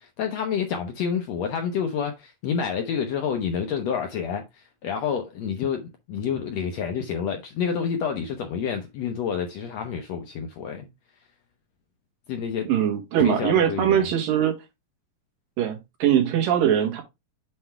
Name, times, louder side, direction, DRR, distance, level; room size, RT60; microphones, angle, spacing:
voice 1, 0.0-10.9 12.3-12.7 13.2-14.1, left 7 dB, 75° left, 1.6 m, -28 dB
voice 2, 12.6-14.6 15.6-17.0, right 10 dB, 80° right, 3.2 m, -22 dB
7.6 x 3.3 x 4.5 m
omnidirectional pair, 3.9 m